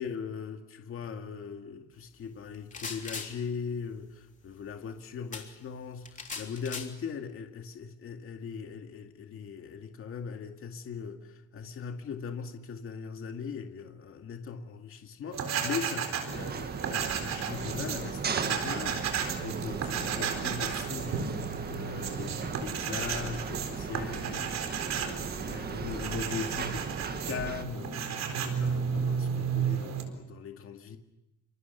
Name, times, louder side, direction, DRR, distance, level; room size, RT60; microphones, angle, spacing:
voice 1, 0.0-24.5 24.9-31.0, left 6 dB, 40° left, 5 dB, 2.2 m, -40 dB
sound 1, 2.5-3.3 5.3-5.5 6.0-6.9, left 4 dB, 25° left, 3.3 m, -39 dB
sound 2, 15.3-30.0, right 7 dB, 55° right, 4.2 m, -33 dB
sound 3, 16.3-27.6, right 6 dB, 30° right, 1.5 m, -38 dB
28.0 x 26.5 x 7.0 m, 0.92 s
cardioid pair, 165°, 32 cm